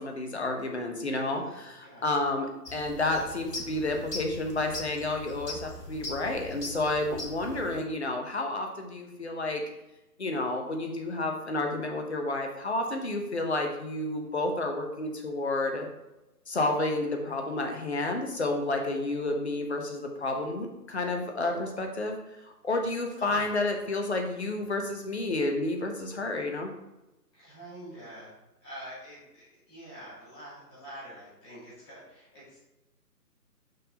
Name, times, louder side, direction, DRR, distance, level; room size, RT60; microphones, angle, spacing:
voice 1, 0.0-9.6 10.2-15.9 16.5-22.2 22.6-26.7, left 2 dB, 45° left, 3 dB, 1.1 m, -30 dB
voice 2, 1.1-2.1 23.1-23.5 27.3-32.6, right 1 dB, 15° left, -10 dB, 2.3 m, -47 dB
sound 1, 2.6-7.8, left 2 dB, 85° left, 1.3 m, -40 dB
5.6 x 5.5 x 3.9 m, 0.97 s
figure-of-eight pair, 150°, 48 cm